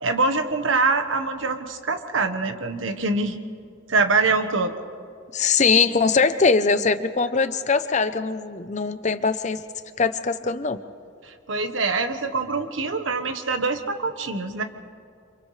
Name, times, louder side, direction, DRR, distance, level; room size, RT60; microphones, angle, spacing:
voice 1, 0.0-3.4 3.9-4.7 7.2-7.3 11.2-14.6, right 3 dB, 80° right, 7 dB, 1.3 m, -24 dB
voice 2, 5.3-9.6 10.0-10.8, left 4 dB, 35° left, 11 dB, 0.7 m, -21 dB
29.5 x 26.5 x 3.3 m, 2.3 s
head